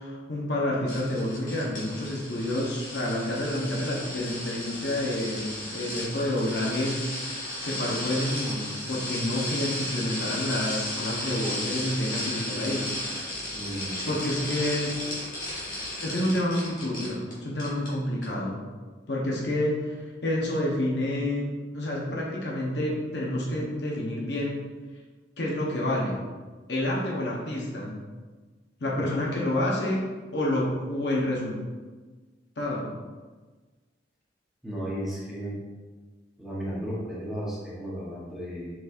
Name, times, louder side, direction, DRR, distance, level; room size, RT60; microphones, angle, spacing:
voice 1, 0.0-7.1 7.6-12.9 14.1-15.0 16.0-18.6 19.1-20.0 20.2-24.6 25.4-26.3 26.7-27.9 28.8-30.0 30.3-31.6 32.6-32.9, left 1 dB, 65° left, -4 dB, 0.9 m, -29 dB
sound 1, 0.9-17.3 17.6-17.9 18.2-18.3, left 1 dB, 45° left, 1.5 m, -34 dB
voice 2, 13.5-14.1 28.9-29.0 34.6-35.6 36.4-38.7, equal, ahead, -8 dB, 1.0 m, -34 dB
4.6 x 4.1 x 2.6 m, 1.3 s
head